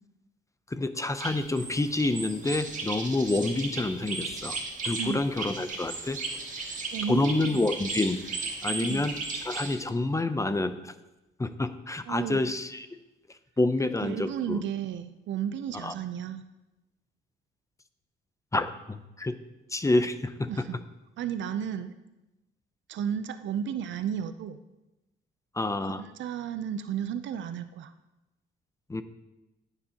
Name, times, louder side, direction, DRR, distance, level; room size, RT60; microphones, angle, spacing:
voice 1, 0.7-4.6 4.8-6.2 7.1-8.2 8.6-10.9 11.4-12.9 13.6-14.6 15.7-15.9 18.5-19.4 19.7-20.7 25.5-26.0 28.9-29.0, left 2 dB, 15° left, 11 dB, 0.6 m, -28 dB
sound 1, 1.2-9.8, right 3 dB, 40° right, 1.7 m, -36 dB
voice 2, 6.9-7.6 8.8-9.1 12.1-12.4 14.0-16.4 20.5-20.8 21.2-21.9 22.9-24.6 26.0-27.9, right 8 dB, 70° right, 11 dB, 0.6 m, -33 dB
14.5 x 6.9 x 2.9 m, 0.99 s
cardioid pair, 90°, 20 cm